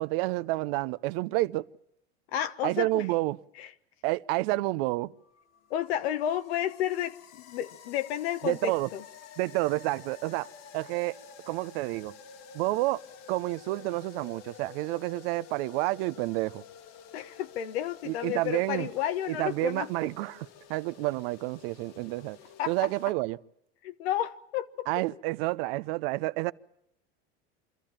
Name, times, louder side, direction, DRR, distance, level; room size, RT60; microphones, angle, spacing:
voice 1, 0.0-1.6 2.6-3.4 4.0-5.1 8.4-8.9 9.4-10.5 10.7-11.2 11.5-12.1 12.5-16.6 18.1-18.9 19.3-22.4 22.7-23.4 24.9-26.5, right 20 dB, 70° right, 0.7 m, -29 dB
voice 2, 2.3-3.0 3.6-3.7 5.7-7.2 7.5-9.0 17.1-19.9 22.6-22.9 23.8-24.9, left 11 dB, 80° left, 1.0 m, -31 dB
sound 1, 5.2-23.1, left 7 dB, 55° left, 1.5 m, -51 dB
25.5 x 13.0 x 8.9 m
supercardioid pair, 100°, 31 cm